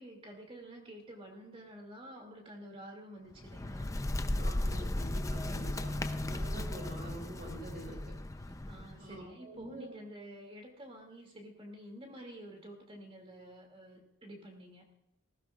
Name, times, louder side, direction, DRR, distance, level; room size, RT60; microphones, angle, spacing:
voice 1, 0.0-3.9 8.7-14.9, right 1 dB, 25° right, 2 dB, 2.4 m, -49 dB
Bird, 3.3-9.1, left 1 dB, 15° left, 0.5 m, -36 dB
voice 2, 4.3-8.1 9.0-10.0, right 1 dB, 40° right, 0 dB, 2.8 m, -46 dB
19.0 x 16.0 x 2.4 m, 0.86 s
head